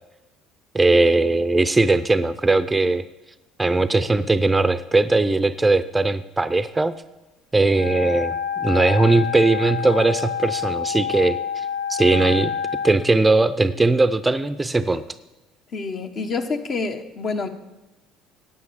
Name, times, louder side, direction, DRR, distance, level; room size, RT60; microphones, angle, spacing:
voice 1, 0.7-3.0 3.6-6.9 7.5-11.6 11.9-12.5 12.8-15.0, right 2 dB, 15° right, 14 dB, 0.5 m, -19 dB
Wind instrument woodwind instrument, 7.7-13.0, left 8 dB, 70° left, 0.9 m, -28 dB
voice 2, 15.7-17.5, left 4 dB, 50° left, 6 dB, 1.3 m, -27 dB
9.6 x 8.7 x 7.1 m, 1.0 s
hypercardioid pair, 65°, 0 cm